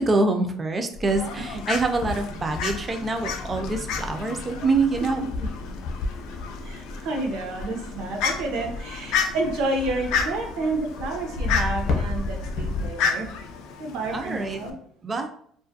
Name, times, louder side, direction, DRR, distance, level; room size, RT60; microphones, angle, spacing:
voice 1, 0.0-5.2 14.1-14.6 15.0-15.3, right 3 dB, 20° right, 5 dB, 0.3 m, -25 dB
sound 1, 0.9-12.9, left 3 dB, 50° left, 0.7 m, -33 dB
Fowl, 1.1-14.7, left 6 dB, 75° left, 0.3 m, -32 dB
voice 2, 6.6-13.3 13.8-14.7, right 2 dB, 75° right, 3 dB, 0.6 m, -30 dB
2.4 x 2.4 x 2.6 m, 0.63 s
cardioid pair, 145°, 0 cm